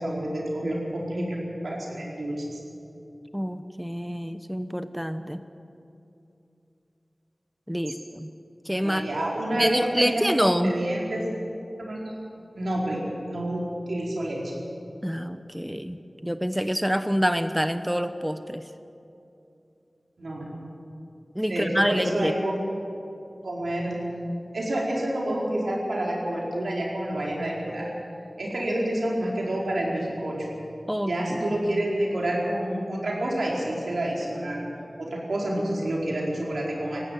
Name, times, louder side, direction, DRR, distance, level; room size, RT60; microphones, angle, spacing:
voice 1, 0.0-1.4 1.6-2.6 7.9-8.0 8.8-11.2 11.8-12.0 12.5-14.5 20.2-20.6 21.5-22.5 23.4-24.0 24.5-27.9 28.4-30.5 31.1-34.6 35.0-37.0, right 1 dB, 90° right, -3 dB, 4.8 m, -28 dB
voice 2, 3.3-5.4 7.7-8.3 8.7-9.1 9.5-10.7 15.0-18.6 21.3-22.3 30.9-31.1, equal, 5° right, 10 dB, 0.8 m, -26 dB
19.0 x 16.0 x 9.5 m, 2.7 s
wide cardioid pair, 70°, 0 cm